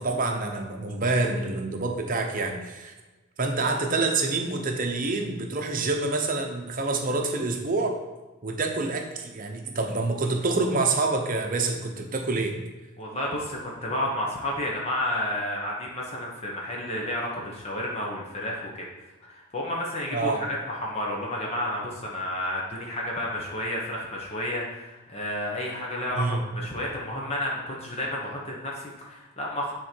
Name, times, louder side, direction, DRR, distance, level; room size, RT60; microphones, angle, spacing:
voice 1, 0.0-2.9 3.4-8.0 8.4-12.6 20.1-20.4 26.1-26.5, right 3 dB, 40° right, 3 dB, 0.9 m, -27 dB
voice 2, 13.0-18.9 19.2-29.7, left 1 dB, 30° left, -3 dB, 1.1 m, -31 dB
9.5 x 3.8 x 4.5 m, 1.2 s
head